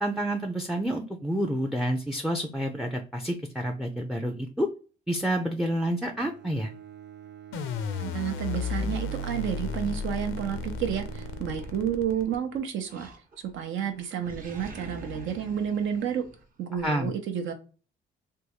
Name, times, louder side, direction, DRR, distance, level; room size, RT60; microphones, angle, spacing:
voice 1, 0.0-4.7 5.1-6.7 16.8-17.1, right 1 dB, ahead, 4 dB, 0.4 m, -29 dB
Bowed string instrument, 6.0-12.7, right 10 dB, 60° right, 0.4 m, -47 dB
sound 1, 7.5-12.6, left 4 dB, 85° left, 0.5 m, -33 dB
voice 2, 7.9-13.1 13.4-16.2 16.6-17.5, right 8 dB, 80° right, 7 dB, 0.7 m, -30 dB
Animal, 11.5-12.3 12.9-13.6 13.9-16.9, right 2 dB, 45° right, 0.9 m, -46 dB
3.5 x 2.3 x 2.9 m, 0.36 s
cardioid pair, 90°, 20 cm